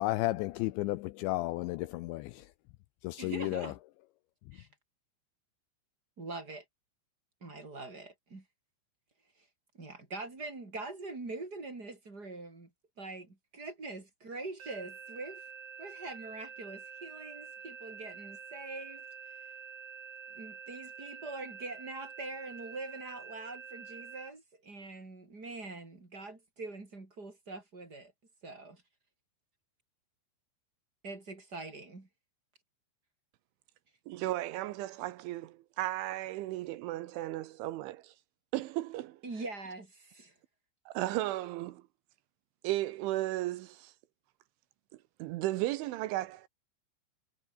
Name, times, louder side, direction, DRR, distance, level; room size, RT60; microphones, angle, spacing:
voice 1, 0.0-2.4 3.0-3.7, left 18 dB, 80° left, 2.7 m, -33 dB
voice 2, 3.2-3.8 4.5-4.7 6.2-6.6 7.4-8.4 9.7-12.7 13.0-15.4 15.8-19.0 20.3-28.1 28.4-28.8 31.0-32.1 39.2-40.3, right 3 dB, 20° right, 4.4 m, -43 dB
sound 1, 14.6-24.3, right 6 dB, 55° right, 7.1 m, -47 dB
voice 3, 34.1-38.1 38.5-39.2 40.9-41.8 42.6-43.9 45.2-46.5, right 16 dB, 80° right, 3.2 m, -35 dB
omnidirectional pair, 5.8 m